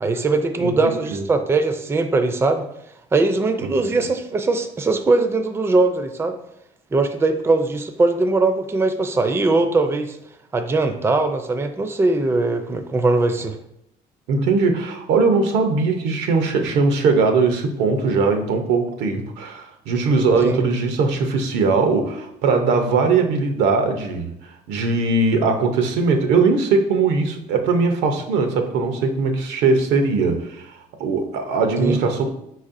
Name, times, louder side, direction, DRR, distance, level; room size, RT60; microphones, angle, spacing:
voice 1, 0.0-2.6 3.1-6.3 6.9-10.2 10.5-13.6 20.4-20.6 31.8-32.0, right 3 dB, 15° right, 8 dB, 0.4 m, -20 dB
voice 2, 0.6-1.2 3.8-4.0 14.3-24.3 24.7-32.3, right 4 dB, 90° right, 5 dB, 0.7 m, -20 dB
4.6 x 4.1 x 2.5 m, 0.78 s
cardioid pair, 110°, 17 cm